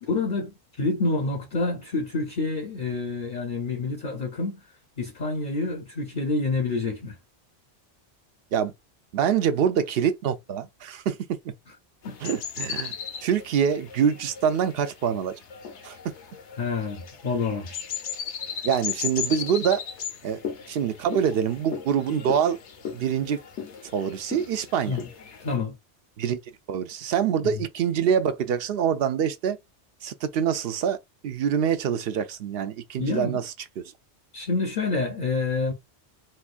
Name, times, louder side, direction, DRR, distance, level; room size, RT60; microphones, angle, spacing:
voice 1, 0.0-4.7 5.0-7.2 12.0-12.2 16.6-17.8 24.8-25.1 25.4-25.7 27.4-27.5 33.0-33.4 34.3-35.7, left 3 dB, 50° left, 0.7 m, -28 dB
voice 2, 9.1-11.2 12.2-12.9 13.2-15.3 15.8-15.9 18.6-19.8 20.2-20.4 20.7-22.6 22.9-23.4 23.9-25.0 26.2-26.4 26.7-29.6 30.0-31.0 31.2-33.5, right 8 dB, 65° right, 0.7 m, -25 dB
sound 1, 12.0-25.6, left 7 dB, 80° left, 1.0 m, -36 dB
4.2 x 2.3 x 2.4 m
omnidirectional pair, 1.2 m